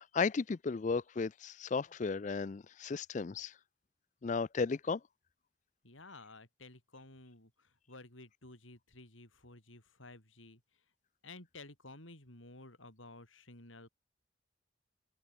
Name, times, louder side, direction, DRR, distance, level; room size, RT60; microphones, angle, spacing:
voice 1, 0.0-3.5 4.2-5.0, left 4 dB, 40° left, 0.4 m, -34 dB
voice 2, 5.8-10.6 11.2-13.9, left 2 dB, 90° left, 7.0 m, -54 dB
head